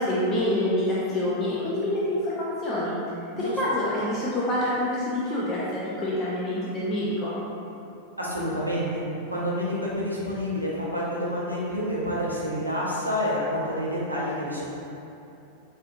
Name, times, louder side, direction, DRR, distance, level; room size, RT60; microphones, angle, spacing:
voice 1, 0.0-3.0 3.4-7.4, left 1 dB, 25° left, -7 dB, 0.4 m, -26 dB
voice 2, 8.2-9.0 9.3-14.6, equal, 90° right, -7 dB, 0.6 m, -28 dB
4.2 x 2.4 x 2.3 m, 2.8 s
figure-of-eight pair, 90°, 0 cm